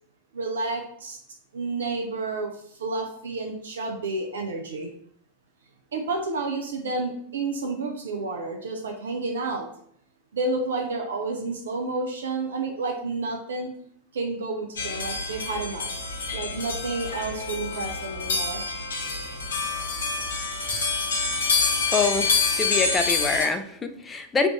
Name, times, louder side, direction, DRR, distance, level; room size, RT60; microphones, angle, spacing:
voice 1, 0.3-1.2 1.5-4.9 5.9-9.7 10.3-13.7 14.1-15.9 16.3-18.6, right 3 dB, 65° right, 2 dB, 0.5 m, -30 dB
sound 1, 14.8-23.5, left 4 dB, 65° left, 0.8 m, -27 dB
voice 2, 21.9-24.5, left 4 dB, 15° left, 8 dB, 0.4 m, -25 dB
3.2 x 2.5 x 3.1 m, 0.67 s
figure-of-eight pair, 90°, 0 cm